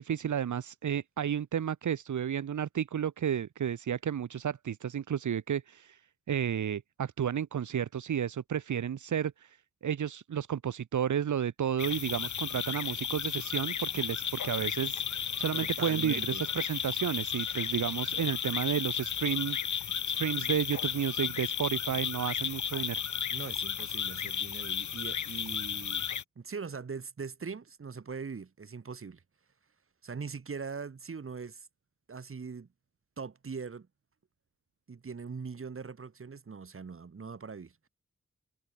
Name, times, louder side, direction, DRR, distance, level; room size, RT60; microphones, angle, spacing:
voice 1, 0.0-6.0 6.3-9.6 9.8-23.0, right 9 dB, 90° right, 1.5 m, -32 dB
sound 1, 11.8-26.2, left 8 dB, 80° left, 2.0 m, -34 dB
voice 2, 15.5-16.5 23.3-26.1 26.4-29.2 30.0-31.7 32.1-32.7 33.2-33.9 34.9-37.9, right 5 dB, 45° right, 6.4 m, -41 dB
wide cardioid pair, 155°, 29 cm